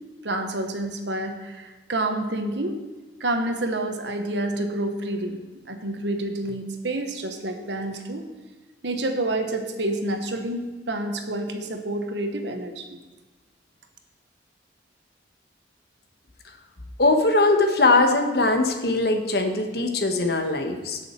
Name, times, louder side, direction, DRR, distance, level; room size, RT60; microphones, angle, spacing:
voice 1, 0.2-2.8 3.2-5.4 5.7-8.3 8.8-13.0, right 1 dB, 75° right, 5 dB, 1.3 m, -28 dB
voice 2, 17.0-21.0, left 2 dB, 55° left, 5 dB, 1.2 m, -21 dB
17.0 x 6.3 x 4.5 m, 1.2 s
head